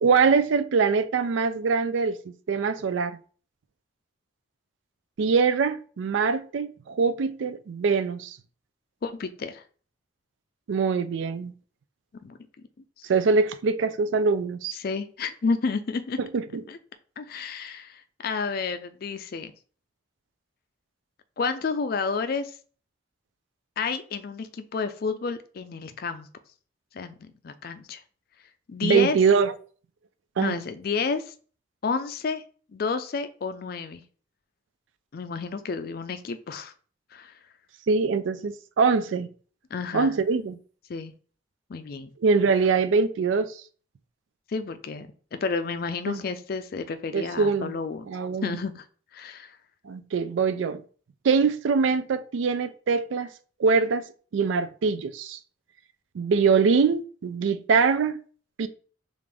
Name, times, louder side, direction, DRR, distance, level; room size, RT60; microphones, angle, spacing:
voice 1, 0.0-2.2 2.5-3.2 5.2-8.4 10.7-11.5 13.1-14.8 16.2-16.6 28.8-29.5 30.4-30.6 37.9-39.3 39.9-40.6 42.2-43.5 46.1-46.2 47.1-47.7 48.1-48.5 49.9-50.8 51.2-53.3 53.6-54.0 54.3-55.4 56.1-58.2 58.6-58.7, right 5 dB, 75° right, 0.4 m, -23 dB
voice 2, 9.0-9.6 12.2-12.4 14.7-16.2 16.7-16.8 17.2-19.5 21.4-22.6 23.8-26.3 26.9-28.0 28.7-29.2 30.4-31.3 31.8-32.4 32.7-34.0 35.1-36.7 37.1-37.3 39.7-40.1 40.9-41.1 41.7-42.1 44.5-48.1 48.4-48.9 49.1-49.5, left 4 dB, 50° left, 0.4 m, -30 dB
4.9 x 2.5 x 3.4 m
head